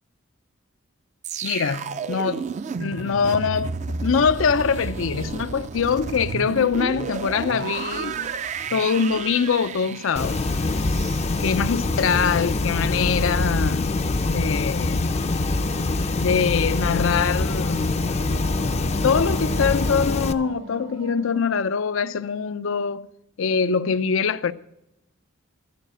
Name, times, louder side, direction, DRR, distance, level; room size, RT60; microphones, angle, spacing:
sound 1, 1.2-12.3 12.7-12.9, right 5 dB, 35° right, 0.3 m, -32 dB
voice 1, 1.4-2.4 2.8-3.7 4.0-8.3 8.7-10.4 11.4-13.9 14.3-15.0 16.2-18.0 18.3-18.5 19.0-23.1 23.4-24.5, left 6 dB, 85° left, 0.5 m, -23 dB
sound 2, 10.2-20.3, left 2 dB, 35° left, 0.4 m, -24 dB
sound 3, 15.1-21.4, right 3 dB, 55° right, 0.7 m, -42 dB
13.5 x 4.9 x 8.9 m
head